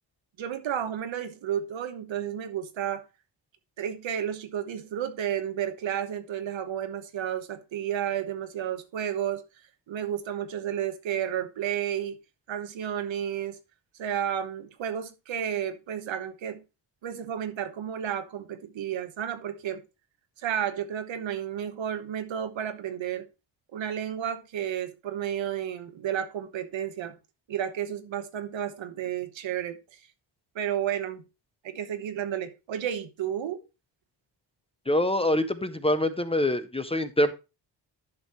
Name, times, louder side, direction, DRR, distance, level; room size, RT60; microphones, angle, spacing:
voice 1, 0.4-3.0 3.8-9.4 9.9-12.2 12.5-13.6 14.0-16.6 17.0-19.8 20.4-23.3 23.7-27.2 27.5-30.1 30.5-31.2 31.6-33.6, right 9 dB, 85° right, 1.2 m, -32 dB
voice 2, 34.9-37.3, left 1 dB, 15° left, 0.5 m, -25 dB
11.0 x 6.3 x 3.0 m
wide cardioid pair, 150°, 44 cm